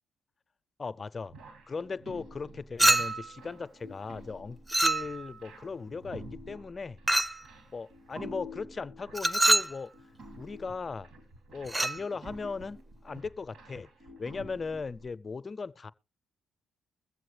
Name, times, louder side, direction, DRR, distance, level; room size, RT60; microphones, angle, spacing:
voice 1, 0.8-1.3 1.7-7.0 7.6-9.9 10.4-11.1 11.5-13.9 14.2-15.9, left 4 dB, 40° left, 0.5 m, -38 dB
sound 1, 1.3-15.1, equal, 75° right, 2.7 m, -49 dB
Chink clink, 2.8-3.4 4.7-5.4 7.1-7.4 9.1-9.8 11.7-12.0, right 1 dB, 15° right, 0.5 m, -25 dB
21.5 x 7.6 x 3.2 m
supercardioid pair, 55°, 0 cm